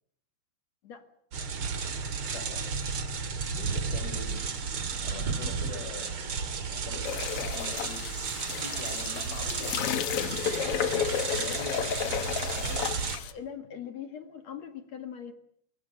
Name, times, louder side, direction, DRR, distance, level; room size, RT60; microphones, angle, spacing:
sound 1, 1.3-13.2, right 5 dB, 40° right, 2.2 m, -33 dB
voice 1, 2.3-2.6 3.5-4.4 5.0-6.1 6.9-8.0 8.3-13.0, left 4 dB, 70° left, 6 dB, 7.3 m, -42 dB
sound 2, 7.0-13.3, left 8 dB, 85° left, 1.3 m, -32 dB
voice 2, 12.6-15.3, left 8 dB, 50° left, 8 dB, 2.6 m, -42 dB
23.0 x 22.5 x 9.0 m, 0.68 s
omnidirectional pair, 4.6 m